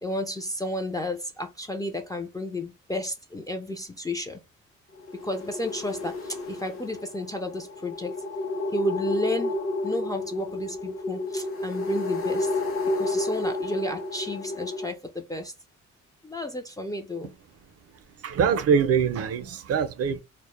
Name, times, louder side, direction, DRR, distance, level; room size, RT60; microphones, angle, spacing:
voice 1, 0.0-4.4 5.2-8.2 8.7-9.5 9.8-12.5 13.0-15.5 16.2-17.3, left 1 dB, 15° left, 0.3 m, -32 dB
sound 1, 5.0-14.9, left 2 dB, 45° left, 0.7 m, -31 dB
voice 2, 18.2-20.2, right 7 dB, 55° right, 0.5 m, -23 dB
2.1 x 2.0 x 3.0 m
cardioid pair, 90°, 30 cm